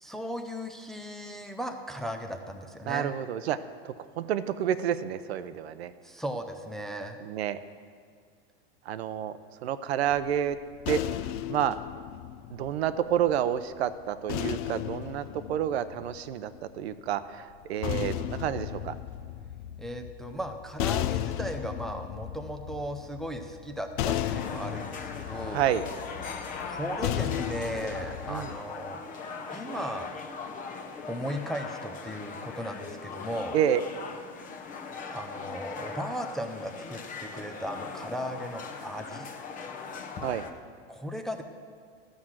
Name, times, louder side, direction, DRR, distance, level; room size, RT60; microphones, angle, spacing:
voice 1, 0.0-3.1 6.0-7.2 19.8-25.7 26.4-29.0 29.5-30.1 31.1-33.6 35.1-39.3 40.9-41.4, equal, ahead, 4 dB, 0.4 m, -36 dB
voice 2, 2.9-3.6 3.8-5.9 7.2-7.6 8.9-9.3 9.6-10.6 10.9-11.0 11.5-11.8 12.5-18.9 25.4-25.8 28.3-28.5 33.5-33.8 40.2-40.5, right 10 dB, 90° right, 12 dB, 0.7 m, -29 dB
sound 1, 10.1-13.4 14.3-16.6 17.5-28.6, left 12 dB, 55° left, 0.5 m, -35 dB
sound 2, 24.0-40.5, left 5 dB, 25° left, 0.8 m, -40 dB
13.0 x 6.3 x 7.3 m, 2.1 s
supercardioid pair, 140°, 31 cm